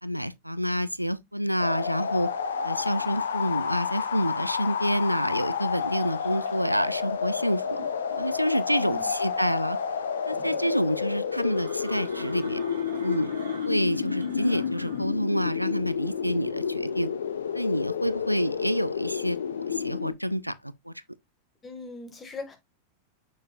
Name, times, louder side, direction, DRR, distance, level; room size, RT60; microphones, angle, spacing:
voice 1, 0.0-2.3 2.6-7.8 8.2-9.8 10.3-12.6 13.0-13.3 13.6-17.1 17.5-19.4 19.7-20.9, equal, 90° right, 0.4 m, -28 dB
sound 1, 1.6-20.1, left 7 dB, 65° left, 0.8 m, -30 dB
sound 2, 1.8-15.0, right 2 dB, 75° right, 2.6 m, -47 dB
voice 2, 8.7-9.0 21.6-22.6, left 3 dB, 20° left, 2.0 m, -39 dB
6.6 x 6.6 x 2.4 m
figure-of-eight pair, 90°, 0 cm